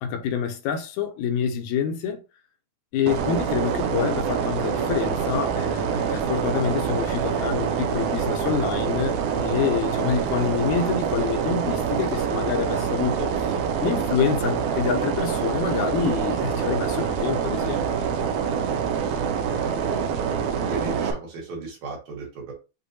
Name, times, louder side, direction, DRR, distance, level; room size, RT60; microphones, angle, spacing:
voice 1, 0.0-2.2 2.9-13.6 13.8-17.9, left 7 dB, 80° left, 2.0 m, -27 dB
sound 1, 3.1-21.1, right 7 dB, 90° right, 2.2 m, -25 dB
voice 2, 19.0-19.5 19.9-20.0 20.7-22.5, right 3 dB, 65° right, 2.9 m, -36 dB
6.7 x 2.7 x 2.7 m
omnidirectional pair, 3.5 m